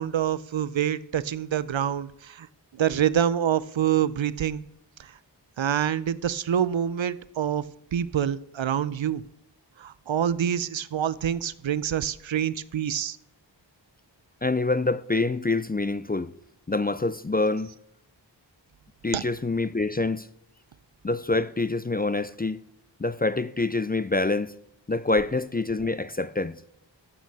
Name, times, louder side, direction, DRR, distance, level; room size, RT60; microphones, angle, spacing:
voice 1, 0.0-2.5 2.7-4.6 5.0-5.1 5.6-7.7 7.9-9.2 9.8-13.2 19.1-19.2, right 9 dB, 80° right, 0.5 m, -26 dB
voice 2, 14.4-16.3 16.7-17.7 19.0-20.3 21.0-22.6 23.0-24.5 24.9-26.6, left 3 dB, 20° left, 0.3 m, -26 dB
12.5 x 8.4 x 4.1 m
wide cardioid pair, 45°, 46 cm